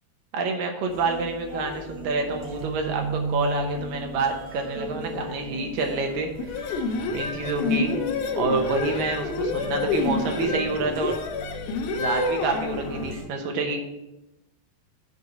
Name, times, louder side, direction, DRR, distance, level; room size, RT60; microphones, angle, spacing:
voice 1, 0.3-6.5 7.1-7.9 8.4-11.2 12.0-13.9, right 3 dB, 70° right, 3 dB, 2.3 m, -28 dB
sound 1, 0.9-13.2, equal, 55° right, 3.7 m, -35 dB
sound 2, 6.4-13.2, left 4 dB, 80° left, 1.8 m, -28 dB
8.4 x 4.5 x 6.5 m, 0.96 s
omnidirectional pair, 4.7 m